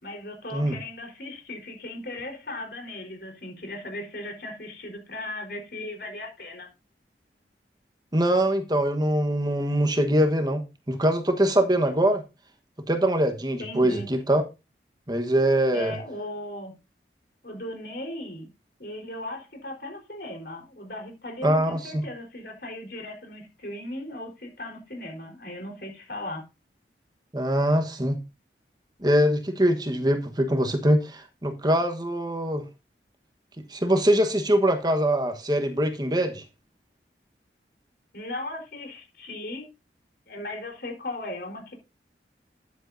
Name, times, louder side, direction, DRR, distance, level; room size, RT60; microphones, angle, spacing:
voice 1, 0.0-6.7 13.6-14.1 15.7-16.7 17.4-18.5 18.8-26.4 38.1-39.7 40.3-41.7, left 1 dB, 60° left, 4.1 m, -37 dB
voice 2, 8.1-12.2 12.9-14.4 15.1-15.9 21.4-22.0 27.3-28.2 29.0-32.6 33.7-36.4, right 1 dB, 25° right, 1.2 m, -23 dB
13.5 x 10.5 x 2.7 m
head